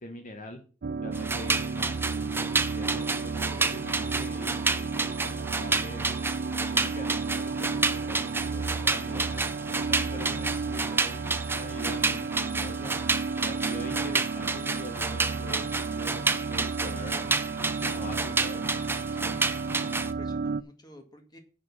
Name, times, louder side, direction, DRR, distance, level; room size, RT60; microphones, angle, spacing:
voice 1, 0.0-0.6 1.0-2.5 2.8-6.1 6.7-9.4 9.9-11.2 11.5-13.0 13.4-17.3 17.8-18.6, left 1 dB, 45° left, 5 dB, 1.2 m, -43 dB
sound 1, 0.8-20.6, right 4 dB, 55° right, 0.4 m, -33 dB
sound 2, 1.1-20.1, right 3 dB, 10° right, 0.6 m, -30 dB
voice 2, 19.1-19.5 19.9-21.4, left 1 dB, 20° left, 4 dB, 1.9 m, -50 dB
7.1 x 6.5 x 7.0 m, 0.38 s
head